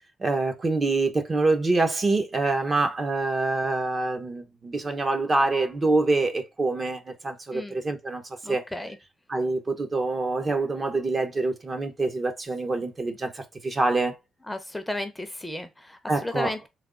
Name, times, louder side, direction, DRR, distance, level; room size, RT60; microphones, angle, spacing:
voice 1, 0.2-8.6 9.3-14.2 16.1-16.5, right 3 dB, 30° right, 0.9 m, -26 dB
voice 2, 8.4-9.0 14.5-16.7, left 1 dB, 10° left, 0.7 m, -34 dB
3.6 x 3.5 x 3.7 m
cardioid pair, 90°, 0 cm